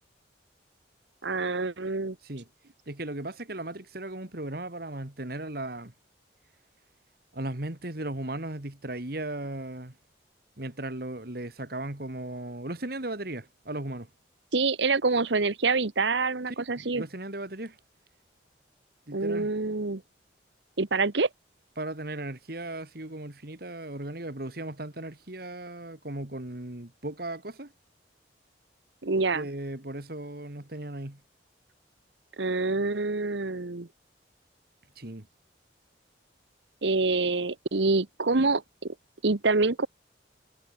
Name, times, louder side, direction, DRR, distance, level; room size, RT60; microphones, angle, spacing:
voice 1, 1.2-2.2 14.5-17.0 19.1-20.0 20.8-21.3 29.0-29.5 32.4-33.9 36.8-38.9 39.2-39.9, right 3 dB, 75° right, 1.1 m, -26 dB
voice 2, 2.9-5.9 7.3-10.0 10.6-14.1 16.5-17.8 19.1-19.5 21.8-27.7 29.3-31.2 35.0-35.3, right 1 dB, 55° right, 2.3 m, -36 dB
head